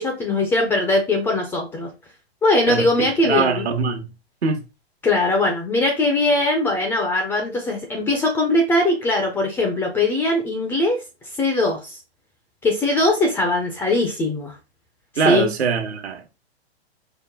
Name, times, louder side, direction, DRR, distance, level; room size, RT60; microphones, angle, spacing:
voice 1, 0.0-1.9 2.4-3.7 5.0-11.0 11.4-12.0 12.6-14.6 15.2-15.5, left 2 dB, 5° left, 0.3 m, -20 dB
voice 2, 2.7-4.1 4.4-4.6 15.2-16.4, right 5 dB, 75° right, 1.1 m, -23 dB
4.8 x 2.2 x 3.3 m
hypercardioid pair, 125°, 32 cm